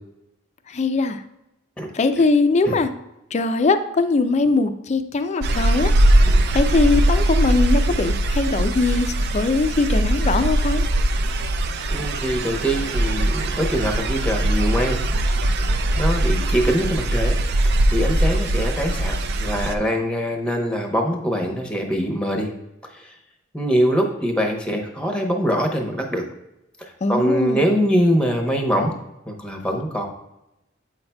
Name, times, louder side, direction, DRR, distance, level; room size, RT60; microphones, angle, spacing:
voice 1, 0.7-1.2 1.9-2.9 3.3-5.9 6.5-10.8 27.0-27.6, left 3 dB, 35° left, 10 dB, 0.4 m, -21 dB
sound 1, 5.4-19.8, right 1 dB, 60° right, 0.4 m, -20 dB
voice 2, 11.9-15.0 16.0-17.4 17.6-22.5 22.9-23.1 23.5-26.2 26.8-28.9 29.3-30.1, equal, 5° left, 3 dB, 0.8 m, -23 dB
7.7 x 5.6 x 2.2 m, 0.88 s
head